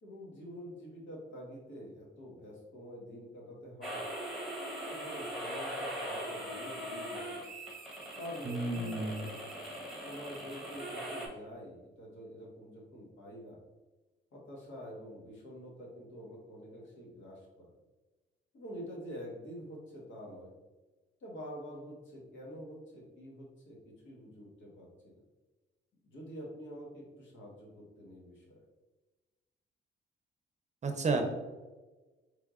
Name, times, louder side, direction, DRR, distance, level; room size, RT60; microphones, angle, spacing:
voice 1, 0.0-4.0 5.0-7.4 8.1-9.3 10.0-13.6 14.3-17.7 18.5-20.5 21.2-25.2 26.1-28.6, equal, 70° left, -3 dB, 1.5 m, -47 dB
sound 1, 3.8-11.3, right 1 dB, ahead, 1.2 m, -40 dB
voice 2, 8.4-9.2 30.8-31.2, right 3 dB, 35° right, 5 dB, 0.7 m, -31 dB
4.5 x 3.5 x 2.5 m, 1.2 s
cardioid pair, 90°, 20 cm